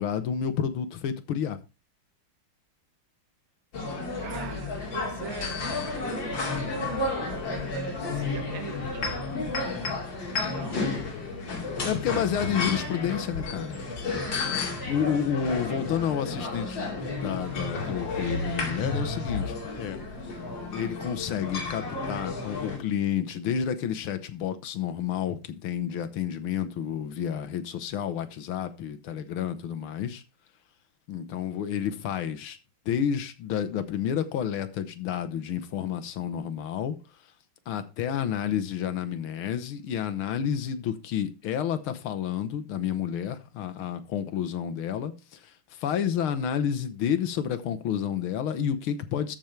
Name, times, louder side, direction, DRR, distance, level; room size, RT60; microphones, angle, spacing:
voice 1, 0.0-1.6 9.7-10.0 11.8-13.8 14.9-20.0 20.7-30.2 31.1-32.6 32.9-37.0 37.7-45.5 45.8-49.4, left 8 dB, 75° left, 1.8 m, -30 dB
sound 1, 3.7-22.8, left 3 dB, 60° left, 3.2 m, -32 dB
voice 2, 4.2-9.4 10.5-11.3 14.1-14.5, right 6 dB, 70° right, 2.1 m, -43 dB
13.5 x 5.1 x 4.5 m
omnidirectional pair, 2.4 m